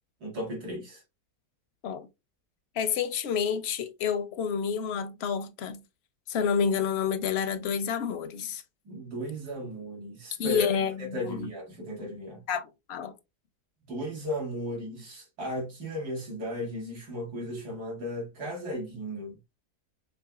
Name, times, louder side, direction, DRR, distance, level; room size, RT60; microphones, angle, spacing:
voice 1, 0.2-1.0 8.9-12.4 13.9-19.4, equal, 80° right, 2.3 m, -35 dB
voice 2, 2.7-5.8 6.3-8.6 10.4-11.5 12.5-13.2, left 7 dB, 65° left, 0.6 m, -29 dB
4.7 x 3.5 x 2.3 m
omnidirectional pair, 1.6 m